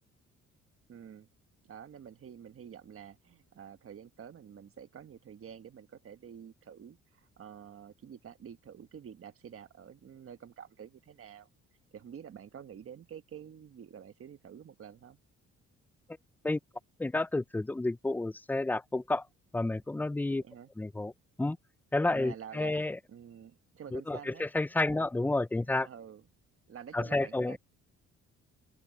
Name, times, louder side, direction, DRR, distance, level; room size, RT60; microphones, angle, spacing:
voice 1, 0.9-1.3 1.6-11.5 11.9-15.2 20.3-20.7 22.1-22.8 23.1-24.5 24.8-25.0 25.6-26.2 26.7-27.6, right 8 dB, 45° right, 1.3 m, -49 dB
voice 2, 17.0-19.2 19.5-20.4 20.8-21.1 21.4-21.6 21.9-23.0 23.9-25.9 26.9-27.6, left 2 dB, 5° left, 0.4 m, -30 dB
open air
cardioid pair, 90°, 30 cm